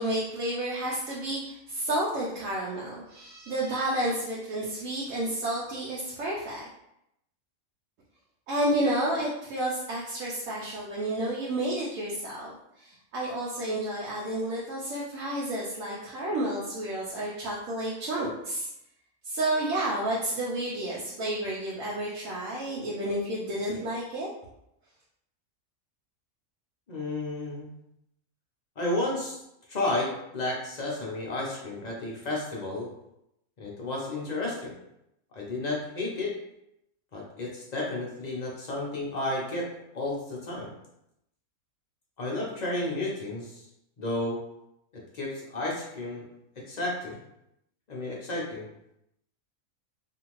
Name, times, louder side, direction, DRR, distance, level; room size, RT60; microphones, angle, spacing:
voice 1, 0.0-6.7 8.5-18.7 19.2-24.3, right 1 dB, 70° right, -6 dB, 1.0 m, -31 dB
voice 2, 26.9-27.7 28.8-29.4 29.7-32.9 33.6-34.7 35.3-36.3 37.1-39.7 39.9-40.7 42.2-43.7 44.0-44.4 45.1-46.3 46.7-47.2 47.9-48.6, left 2 dB, 55° left, -3 dB, 0.4 m, -32 dB
2.7 x 2.5 x 3.0 m, 0.82 s
omnidirectional pair, 1.5 m